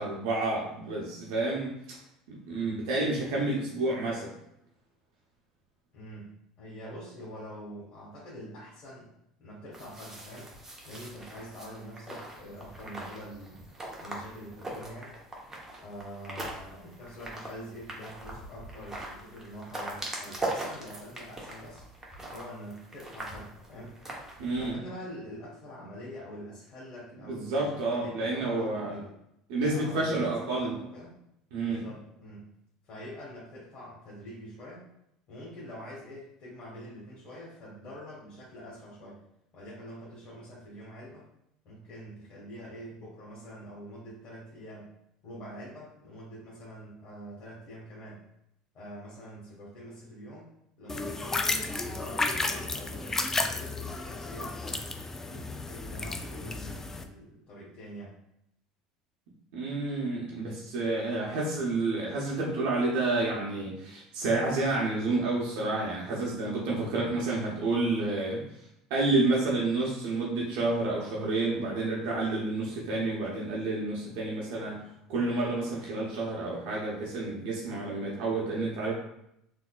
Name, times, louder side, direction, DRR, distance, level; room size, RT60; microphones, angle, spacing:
voice 1, 0.0-2.0 2.3-4.3 24.4-24.8 27.3-28.9 29.5-30.8 31.5-31.9 59.5-68.4 68.9-74.8 75.1-78.9, right 2 dB, 70° right, -4 dB, 0.7 m, -29 dB
voice 2, 2.5-2.9 5.9-9.1 9.4-10.5 10.8-13.6 14.0-15.2 15.8-21.9 22.3-24.0 24.5-29.2 29.6-31.2 31.6-32.5 32.8-34.9 35.3-39.2 39.5-41.3 41.6-44.9 45.2-48.2 48.7-50.5 50.8-54.8 55.3-58.1, equal, 50° left, -6 dB, 1.3 m, -45 dB
sound 1, 9.7-24.7, right 1 dB, 15° right, 0.9 m, -41 dB
sound 2, 50.9-57.0, left 2 dB, 15° left, 0.3 m, -33 dB
3.8 x 2.7 x 2.3 m, 0.78 s
hypercardioid pair, 80°, 3 cm